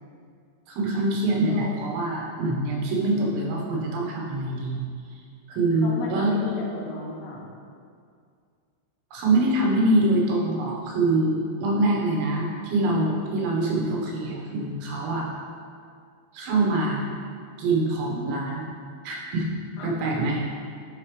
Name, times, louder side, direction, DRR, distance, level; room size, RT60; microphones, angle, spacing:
voice 1, 0.7-4.9 5.5-6.4 9.1-15.3 16.3-17.0 17.6-18.7 19.1-19.5 19.8-20.4, right 2 dB, 85° right, -3 dB, 3.6 m, -24 dB
voice 2, 1.5-1.9 5.7-7.5 19.8-19.9, left 3 dB, 80° left, -4 dB, 3.1 m, -35 dB
10.5 x 5.7 x 3.2 m, 2.3 s
omnidirectional pair, 5.1 m